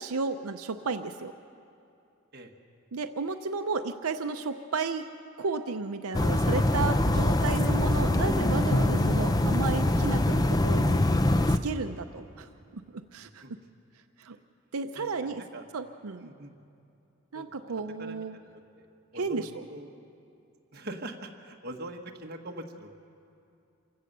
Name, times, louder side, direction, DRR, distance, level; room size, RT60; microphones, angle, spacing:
voice 1, 0.0-1.3 2.9-5.1 5.4-11.0 11.5-12.5 12.7-13.6 14.2-14.4 14.7-15.4 15.7-16.3 17.3-18.4 19.1-19.5, right 4 dB, 90° right, 7 dB, 0.7 m, -33 dB
sound 1, 6.1-11.6, left 1 dB, 15° left, 0.5 m, -24 dB
Drum, 8.7-11.4, left 2 dB, 80° left, 0.7 m, -37 dB
voice 2, 13.2-13.5 14.9-15.6 16.2-16.5 17.3-17.7 18.0-18.2 18.7-19.9 20.7-22.9, right 1 dB, 45° right, 2 dB, 1.5 m, -43 dB
27.5 x 16.0 x 6.8 m, 2.6 s
head